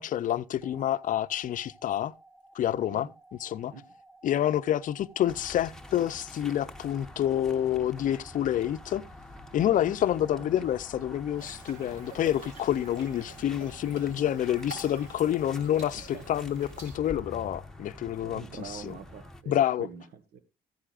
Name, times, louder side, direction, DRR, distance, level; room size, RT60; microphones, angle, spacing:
voice 1, 0.0-2.1 2.5-3.1 3.4-3.7 4.2-9.0 9.5-18.4 18.7-18.9 19.5-19.9, left 11 dB, 50° left, 0.6 m, -28 dB
sound 1, 0.6-15.6, right 2 dB, 25° right, 2.5 m, -55 dB
sound 2, 5.3-19.4, left 1 dB, 5° left, 1.0 m, -47 dB
voice 2, 10.3-10.6 13.8-14.2 16.1-16.2 18.2-20.4, right 6 dB, 70° right, 1.5 m, -45 dB
sound 3, 11.4-17.0, right 2 dB, 50° right, 4.7 m, -48 dB
14.0 x 9.9 x 2.5 m
cardioid pair, 110°, 17 cm